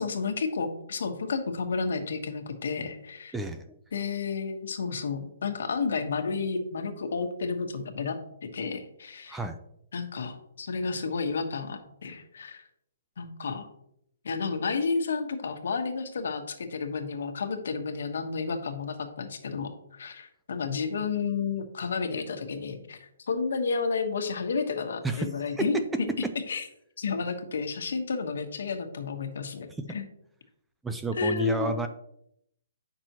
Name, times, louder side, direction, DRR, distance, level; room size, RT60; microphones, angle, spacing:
voice 1, 0.0-3.3 3.9-8.2 8.5-9.4 9.9-12.7 13.2-13.7 14.2-25.8 26.5-26.6 27.0-30.0 31.1-31.8, left 4 dB, 70° left, 5 dB, 1.3 m, -31 dB
voice 2, 3.3-3.7 9.3-9.6 25.0-25.3 25.6-25.7 30.8-31.9, right 2 dB, 5° right, 7 dB, 0.3 m, -30 dB
9.2 x 6.0 x 3.0 m, 0.74 s
hypercardioid pair, 170°, 0 cm